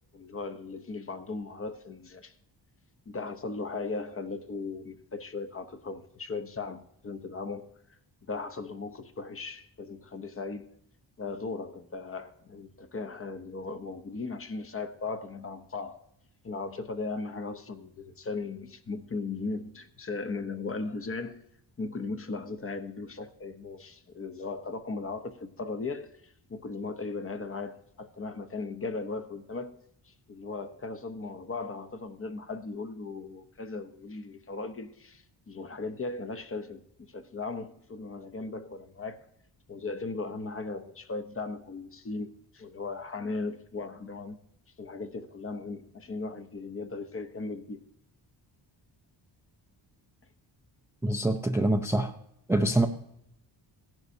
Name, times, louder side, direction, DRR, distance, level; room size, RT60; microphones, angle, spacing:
voice 1, 0.1-2.3 3.1-7.7 8.3-10.7 11.2-16.0 16.4-21.4 21.8-29.8 30.0-39.3 39.7-44.4 44.8-47.8, left 3 dB, 30° left, 0.7 m, -37 dB
voice 2, 51.0-52.2 52.5-52.9, right 1 dB, 5° right, 0.4 m, -25 dB
16.0 x 10.5 x 2.7 m
wide cardioid pair, 140°, 45 cm